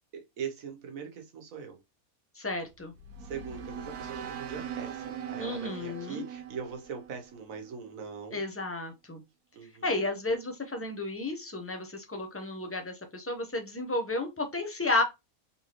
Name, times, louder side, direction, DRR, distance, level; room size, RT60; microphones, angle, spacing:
voice 1, 0.1-1.8 3.2-8.4 9.5-10.0, right 6 dB, 70° right, 1.4 m, -41 dB
voice 2, 2.3-2.9 5.4-6.3 8.3-9.2 9.8-15.0, left 2 dB, 15° left, 0.6 m, -32 dB
sound 1, 2.7-7.9, right 8 dB, 85° right, 1.3 m, -41 dB
4.2 x 3.4 x 3.0 m
omnidirectional pair, 1.5 m